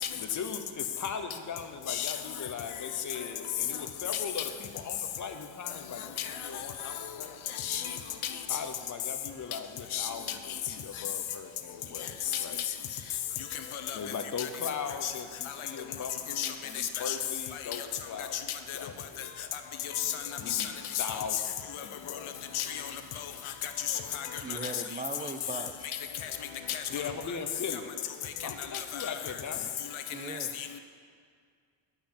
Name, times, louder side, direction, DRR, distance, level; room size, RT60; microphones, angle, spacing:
voice 1, 0.2-6.2 6.4-7.3 8.5-10.4 10.7-12.6 13.9-18.4 18.7-19.5 20.4-20.7 21.0-22.5 26.9-27.9 28.4-29.7, left 6 dB, 40° left, 6 dB, 0.8 m, -39 dB
voice 2, 7.5-8.0 8.2-8.4 9.9-10.1 12.0-12.4 13.5-14.0 14.4-14.5 15.0-15.1 16.4-17.2 17.7-17.9 18.3-18.8 19.5-21.0 21.7-21.8 22.5-22.9 23.2-24.8 26.2-26.3 26.7-27.0 28.7-29.2 29.9-30.8, left 10 dB, 85° left, 7 dB, 1.0 m, -34 dB
voice 3, 24.4-25.9 30.1-30.5, right 2 dB, 20° right, 7 dB, 0.4 m, -39 dB
10.5 x 5.7 x 8.7 m, 2.1 s
wide cardioid pair, 180°, 48 cm